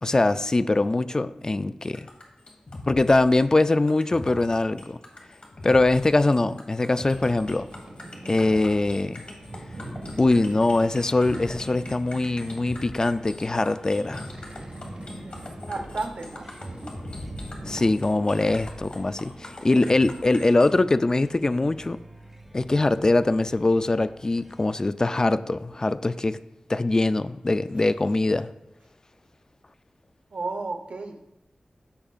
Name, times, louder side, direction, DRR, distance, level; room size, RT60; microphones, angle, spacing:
voice 1, 0.0-2.1 2.9-5.0 5.6-7.7 8.3-9.2 10.2-14.3 17.6-22.0 22.5-26.4 26.7-28.5, left 2 dB, 30° left, 13 dB, 0.3 m, -22 dB
sound 1, 1.8-20.7, left 2 dB, 50° left, 1.5 m, -41 dB
Boat Water vehicle, 7.0-17.9, right 1 dB, 55° right, 1.4 m, -43 dB
sound 2, 8.3-24.7, right 1 dB, 10° right, 1.2 m, -49 dB
voice 2, 15.7-16.5 19.7-19.9 30.3-31.2, right 3 dB, 75° right, 4 dB, 0.8 m, -33 dB
14.0 x 5.5 x 2.4 m, 0.91 s
wide cardioid pair, 85°, 2 cm